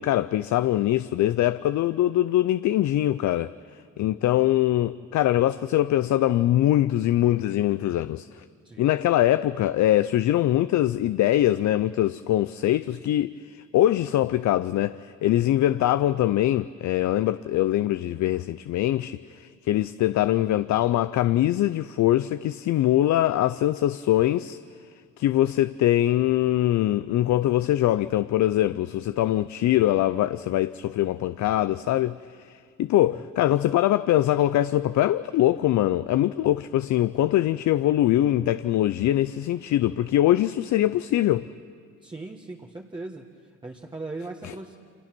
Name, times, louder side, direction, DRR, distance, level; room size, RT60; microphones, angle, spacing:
voice 1, 0.0-3.5 4.0-8.3 8.8-24.6 25.2-32.2 32.8-41.5 44.4-44.5, left 13 dB, 70° left, 0.6 m, -23 dB
voice 2, 42.0-43.3 43.6-44.8, right 2 dB, 15° right, 1.5 m, -38 dB
29.0 x 26.0 x 6.1 m
cardioid pair, 90°, 30 cm